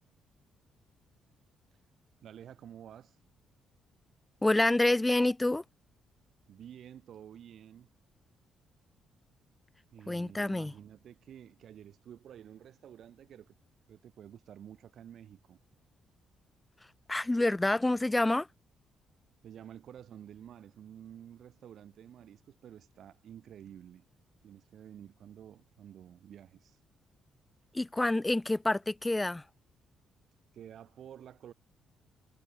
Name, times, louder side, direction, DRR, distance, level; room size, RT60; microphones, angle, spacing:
voice 1, 2.2-3.2 6.5-7.9 9.9-13.5 13.9-15.6 19.4-24.1 24.4-26.8 30.5-31.5, right 10 dB, 65° right, 7.4 m, -51 dB
voice 2, 4.4-5.6 10.1-10.7 17.1-18.5 27.7-29.4, left 2 dB, 15° left, 0.9 m, -27 dB
cardioid pair, 90°, 0 cm